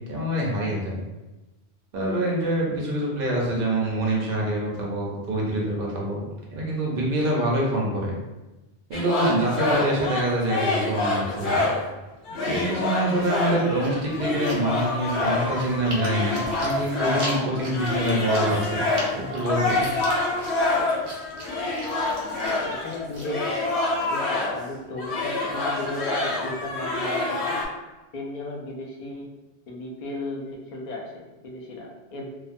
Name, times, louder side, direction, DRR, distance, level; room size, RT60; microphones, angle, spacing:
voice 1, 0.1-1.0 1.9-6.2 6.5-8.1 8.9-11.6 12.5-18.8 19.1-19.8, right 1 dB, 60° right, -3 dB, 0.8 m, -25 dB
sound 1, 8.9-11.9 12.3-24.7 25.0-27.6, left 2 dB, 80° left, 0.8 m, -27 dB
Chewing mastication, 13.2-23.3, equal, 45° right, 0.4 m, -40 dB
voice 2, 22.2-27.6 28.1-29.3 29.7-32.3, left 1 dB, 50° left, -2 dB, 0.5 m, -35 dB
2.4 x 2.1 x 2.5 m, 1.1 s
omnidirectional pair, 1.1 m